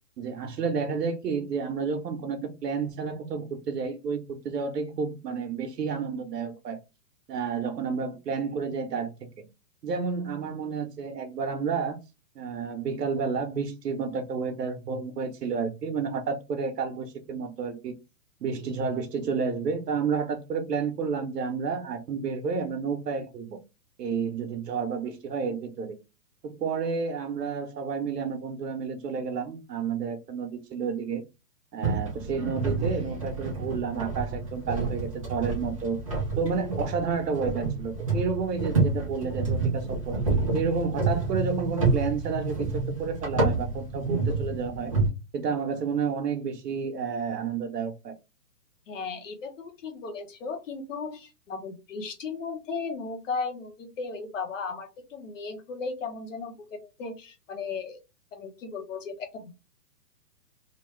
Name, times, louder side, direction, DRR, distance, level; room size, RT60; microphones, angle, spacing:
voice 1, 0.2-6.8 7.3-9.5 9.8-12.0 12.4-17.9 18.4-23.6 24.0-26.0 26.4-31.2 31.7-36.0 36.4-40.2 40.5-44.9 45.3-48.1, right 5 dB, 85° right, 1.0 m, -30 dB
sound 1, 31.8-45.1, right 3 dB, 25° right, 0.5 m, -29 dB
voice 2, 48.9-58.0 58.3-59.5, left 4 dB, 50° left, 0.9 m, -36 dB
3.0 x 2.2 x 3.1 m
hypercardioid pair, 170°, 48 cm